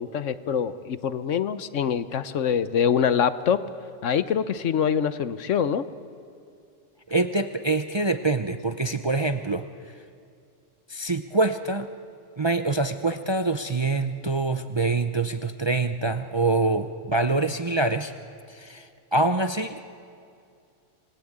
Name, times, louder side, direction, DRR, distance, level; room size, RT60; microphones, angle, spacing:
voice 1, 0.0-3.6 4.0-5.8, left 8 dB, 75° left, 13 dB, 1.2 m, -24 dB
voice 2, 7.1-9.6 10.9-11.9 12.4-18.1 18.5-18.9 19.1-19.8, right 3 dB, 30° right, 8 dB, 0.5 m, -25 dB
27.5 x 20.0 x 8.7 m, 2.4 s
omnidirectional pair, 1.3 m